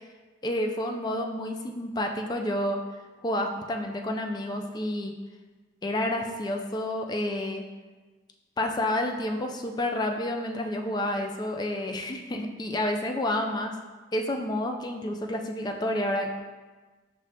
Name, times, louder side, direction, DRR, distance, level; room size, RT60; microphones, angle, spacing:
voice 1, 0.4-2.8 3.2-5.1 5.8-7.6 8.6-13.7 14.1-16.4, left 1 dB, 20° left, 3 dB, 0.3 m, -29 dB
5.2 x 2.7 x 3.3 m, 1.3 s
head